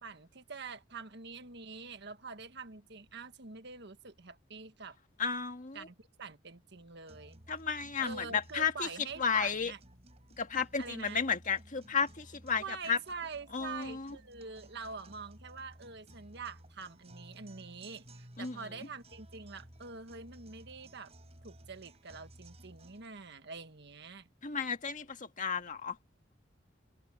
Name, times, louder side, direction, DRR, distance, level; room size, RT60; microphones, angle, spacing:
voice 1, 0.0-5.0 5.7-7.4 8.0-9.8 10.8-11.2 12.6-21.1 21.4-24.3, right 4 dB, 60° right, 1.5 m, -45 dB
voice 2, 5.2-5.9 7.5-8.9 9.2-9.7 10.4-13.0 13.5-14.2 18.4-18.6 24.4-26.0, left 6 dB, 40° left, 1.8 m, -33 dB
sound 1, 7.1-23.1, right 1 dB, 35° right, 6.0 m, -56 dB
head